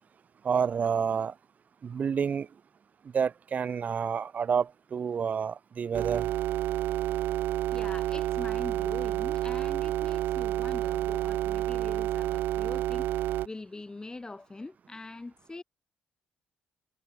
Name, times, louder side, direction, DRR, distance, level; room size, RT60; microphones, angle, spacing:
voice 1, 0.4-1.3 1.8-2.5 3.1-6.3, right 6 dB, 50° right, 2.8 m, -29 dB
sound 1, 5.9-13.5, right 13 dB, 70° right, 0.8 m, -29 dB
voice 2, 7.7-15.6, left 3 dB, 20° left, 6.7 m, -43 dB
supercardioid pair, 60°, 4 cm